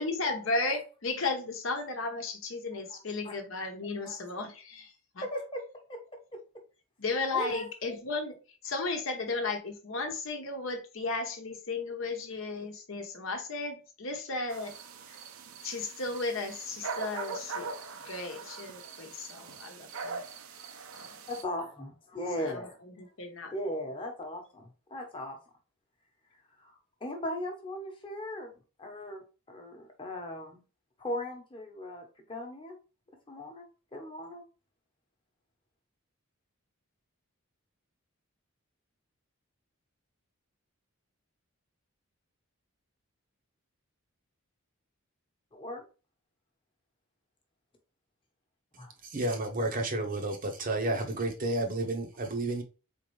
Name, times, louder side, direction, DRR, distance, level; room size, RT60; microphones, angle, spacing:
voice 1, 0.0-5.2 7.0-14.7 15.1-15.2 15.6-17.7 18.0-20.2 21.0-21.2 22.4-22.5 23.0-23.8, left 3 dB, 65° left, 0.9 m, -35 dB
voice 2, 5.2-5.6 5.9-6.0 7.3-7.7 21.3-22.8 23.5-25.4 26.6-29.2 29.5-30.6 31.0-32.8 33.3-33.7 33.9-34.4 45.5-45.8 48.8-48.9, left 1 dB, 25° left, 1.0 m, -38 dB
sound 1, 14.5-21.4, right 4 dB, 75° right, 0.6 m, -42 dB
voice 3, 49.0-52.6, right 2 dB, 40° right, 0.7 m, -31 dB
4.1 x 3.7 x 3.1 m
head